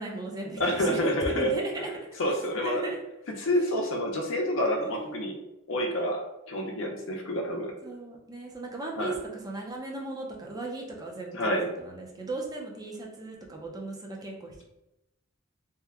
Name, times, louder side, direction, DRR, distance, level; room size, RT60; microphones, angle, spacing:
voice 1, 0.0-2.3 2.6-3.0 4.8-5.4 7.8-14.6, right 2 dB, 20° right, 0 dB, 0.5 m, -37 dB
voice 2, 0.6-1.5 2.2-2.8 3.4-5.3 5.7-7.7 9.0-9.1 11.3-11.7, equal, 65° left, 2 dB, 0.6 m, -28 dB
2.8 x 2.2 x 3.5 m, 0.90 s
head